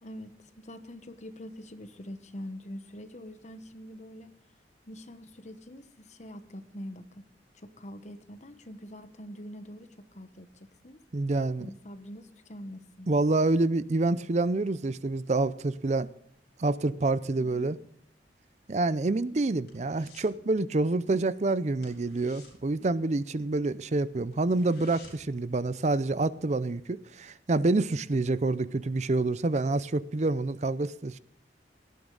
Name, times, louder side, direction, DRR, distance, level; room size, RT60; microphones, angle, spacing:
voice 1, 0.0-4.3 4.9-7.3 7.5-11.0 11.6-13.1 17.4-17.8, equal, 40° left, 1.1 m, -44 dB
voice 2, 11.1-11.7 13.1-16.1 16.6-17.8 18.7-31.2, right 2 dB, 40° right, 0.5 m, -27 dB
sound 1, 18.9-20.4 20.7-21.0 21.2-21.4 21.7-23.6 24.0-24.1 24.3-25.4 25.8-25.9, left 4 dB, 60° left, 5.7 m, -55 dB
18.0 x 12.5 x 3.9 m
head